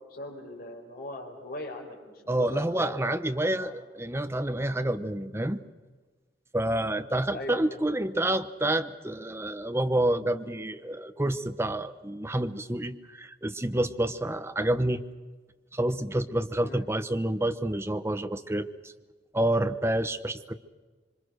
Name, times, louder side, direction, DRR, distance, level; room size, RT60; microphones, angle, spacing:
voice 1, 0.0-3.2 3.6-3.7 7.3-7.8 16.6-16.8, left 1 dB, 55° left, 2 dB, 5.0 m, -40 dB
voice 2, 2.3-5.6 6.5-15.0 15.7-18.9 19.3-20.5, right 1 dB, 15° right, 9 dB, 1.0 m, -28 dB
26.5 x 24.5 x 6.5 m, 1.3 s
head